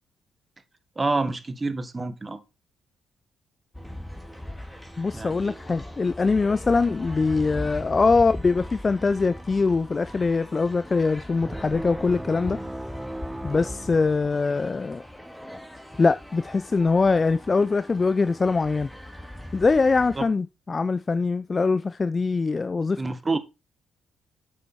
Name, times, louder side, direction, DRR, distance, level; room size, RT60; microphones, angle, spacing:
voice 1, 0.9-2.4 5.1-5.6 20.2-20.3 23.0-23.4, right 3 dB, 25° right, 1.4 m, -28 dB
sound 1, 3.7-20.3, left 1 dB, 5° left, 2.2 m, -40 dB
voice 2, 5.0-12.6 13.4-15.0 16.0-18.9 19.5-23.0, left 4 dB, 35° left, 0.5 m, -23 dB
sound 2, 11.4-14.8, right 1 dB, 10° right, 1.1 m, -37 dB
8.2 x 6.4 x 4.3 m
supercardioid pair, 55°, 0 cm